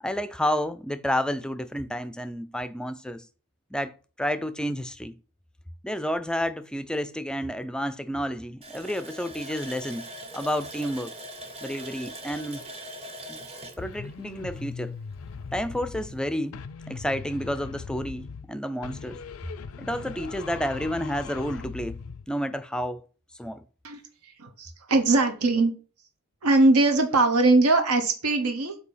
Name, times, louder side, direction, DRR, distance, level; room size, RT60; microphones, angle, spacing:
voice 1, 0.0-3.2 3.7-3.9 4.2-5.1 5.8-10.0 10.3-11.1 11.6-12.6 13.3-13.4 13.8-15.0 15.5-16.6 16.9-19.2 19.8-22.0 22.3-23.0 23.4-23.6, equal, 5° left, 0.3 m, -30 dB
Water tap faucet, 8.6-15.1 15.4-15.5 16.0-16.1, right 1 dB, 25° right, 0.7 m, -41 dB
sound 1, 13.8-16.2 16.5-18.5 18.8-22.3, left 5 dB, 70° left, 0.5 m, -39 dB
voice 2, 23.8-25.7 26.4-28.8, right 2 dB, 85° right, 1.0 m, -21 dB
8.0 x 2.8 x 5.5 m
head